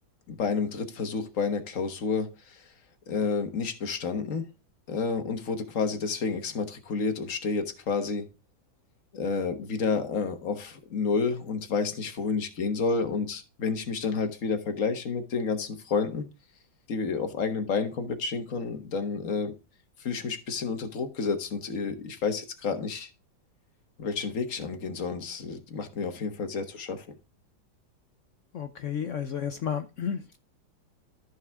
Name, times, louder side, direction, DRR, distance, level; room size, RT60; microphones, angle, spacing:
voice 1, 0.3-2.6 3.1-4.5 4.9-8.3 9.1-16.2 16.9-19.5 20.0-23.1 24.0-27.2, left 5 dB, 50° left, 1.5 m, -30 dB
voice 2, 28.5-30.4, left 8 dB, 70° left, 0.7 m, -32 dB
14.0 x 4.9 x 3.5 m
omnidirectional pair, 2.0 m